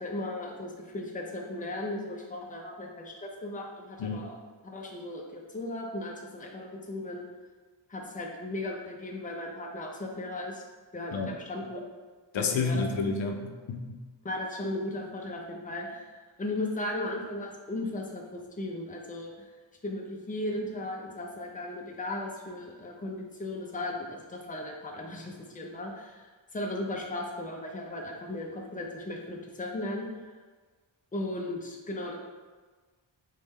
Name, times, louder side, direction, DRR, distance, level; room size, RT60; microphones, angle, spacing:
voice 1, 0.0-4.3 4.6-7.3 7.9-10.6 10.9-11.8 12.4-12.8 14.2-19.5 19.8-30.1 31.1-32.2, left 1 dB, 20° left, 0 dB, 0.6 m, -36 dB
voice 2, 4.0-4.3 11.1-11.3 12.3-14.0, left 4 dB, 75° left, 4 dB, 0.6 m, -30 dB
4.2 x 3.3 x 3.6 m, 1.4 s
wide cardioid pair, 105°, 46 cm